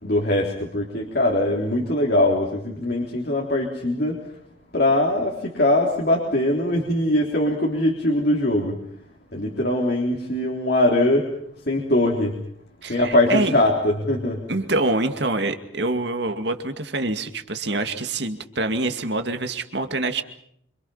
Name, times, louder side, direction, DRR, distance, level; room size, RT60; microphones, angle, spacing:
voice 1, 0.0-4.2 4.7-8.8 9.3-11.4 11.6-12.4 12.9-14.4, left 1 dB, 55° left, 0 dB, 3.6 m, -21 dB
voice 2, 12.8-13.6 14.5-20.2, right 2 dB, 60° right, 7 dB, 2.3 m, -25 dB
27.0 x 26.0 x 5.7 m, 0.70 s
head